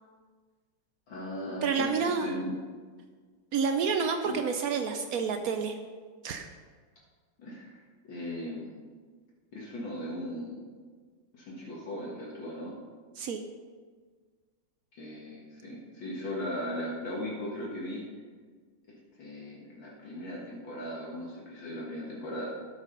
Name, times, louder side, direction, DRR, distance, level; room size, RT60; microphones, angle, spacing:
voice 1, 1.1-2.5 4.2-4.4 7.4-7.8 8.1-8.7 9.5-10.6 11.3-12.7 14.9-18.0 18.9-22.5, left 1 dB, 65° left, -4 dB, 2.3 m, -38 dB
voice 2, 1.6-2.3 3.5-5.7 6.2-6.5 13.2-13.4, right 5 dB, 90° right, 6 dB, 0.7 m, -29 dB
12.5 x 5.7 x 5.3 m, 1.5 s
omnidirectional pair, 2.3 m